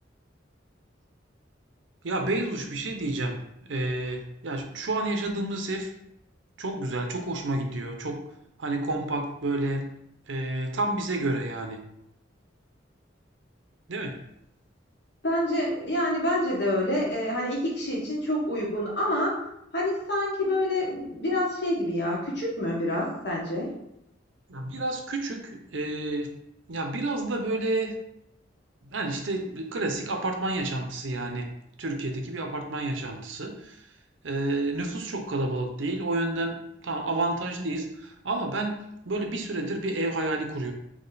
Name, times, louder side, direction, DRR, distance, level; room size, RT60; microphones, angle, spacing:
voice 1, 2.0-5.9 6.6-8.2 8.6-9.8 10.3-11.8 13.9-14.2 24.5-26.3 26.7-27.9 28.9-31.5 31.8-33.8 34.2-36.6 36.8-40.7, right 2 dB, 80° right, 4 dB, 0.7 m, -30 dB
voice 2, 15.2-19.4 19.7-23.7, left 1 dB, 60° left, -3 dB, 1.4 m, -27 dB
4.2 x 3.0 x 3.9 m, 0.79 s
head